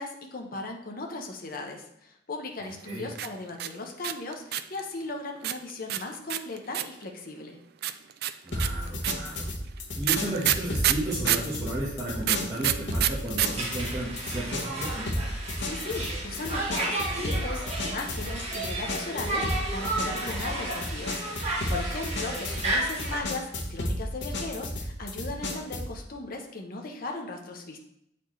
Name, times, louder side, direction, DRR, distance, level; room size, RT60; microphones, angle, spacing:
voice 1, 0.0-7.6 15.3-27.8, left 2 dB, 50° left, 2 dB, 0.8 m, -37 dB
voice 2, 2.6-3.1 8.4-9.5 10.0-15.1, right 1 dB, 20° right, -9 dB, 1.2 m, -34 dB
sound 1, 3.1-4.8 5.4-7.0 7.8-11.5 12.2-13.5 13.7-13.8 14.0-14.5, right 12 dB, 55° right, 0.3 m, -27 dB
sound 2, 8.5-26.0, left 1 dB, 80° left, 1.0 m, -33 dB
Conversation, 13.5-23.2, right 2 dB, 35° right, 1.4 m, -33 dB
8.1 x 4.2 x 3.1 m, 0.78 s
head